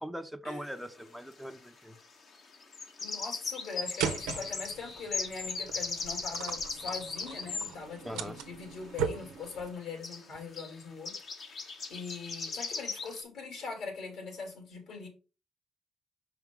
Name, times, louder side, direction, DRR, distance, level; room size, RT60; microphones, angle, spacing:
voice 1, 0.0-2.0 8.0-8.4, equal, ahead, 6 dB, 1.0 m, -41 dB
sound 1, 0.7-0.8 2.5-7.7 9.5-9.6 9.8-9.9 10.0-10.3 10.5-10.8 11.1-13.2, left 4 dB, 55° left, 1.5 m, -38 dB
voice 2, 3.0-15.1, left 4 dB, 70° left, 1 dB, 2.9 m, -42 dB
sound 2, 4.0-9.7, right 7 dB, 85° right, 0.9 m, -38 dB
5.6 x 4.8 x 3.8 m, 0.33 s
hypercardioid pair, 55°, 0 cm